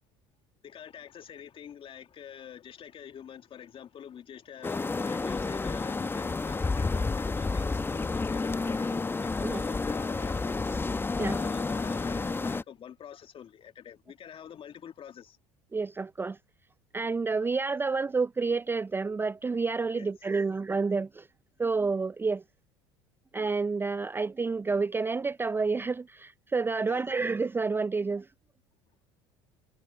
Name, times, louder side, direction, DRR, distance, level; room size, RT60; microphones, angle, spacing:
voice 1, 0.6-10.6 11.2-15.4 19.9-20.4 26.8-27.1, left 9 dB, 40° left, 2.1 m, -47 dB
sound 1, 4.6-12.6, left 3 dB, 15° left, 0.8 m, -30 dB
voice 2, 15.7-16.4 16.9-21.3 21.6-22.4 23.3-28.3, right 4 dB, 15° right, 0.4 m, -29 dB
hypercardioid pair, 70°, 14 cm